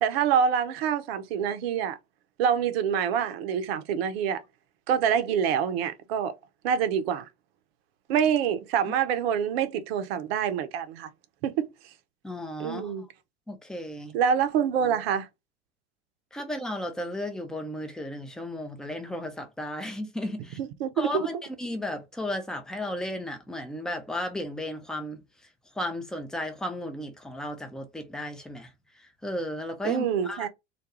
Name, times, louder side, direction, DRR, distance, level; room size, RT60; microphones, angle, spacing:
voice 1, 0.0-2.0 2.4-4.4 4.9-6.4 6.6-7.3 8.1-11.1 11.4-11.7 12.6-13.0 14.1-15.3 20.6-21.3 29.8-30.5, right 8 dB, 60° right, 0.6 m, -26 dB
voice 2, 12.2-13.1 13.5-14.1 16.3-20.6 21.0-25.2 25.8-30.5, left 1 dB, ahead, 0.5 m, -34 dB
2.3 x 2.2 x 2.9 m
figure-of-eight pair, 80°, 35 cm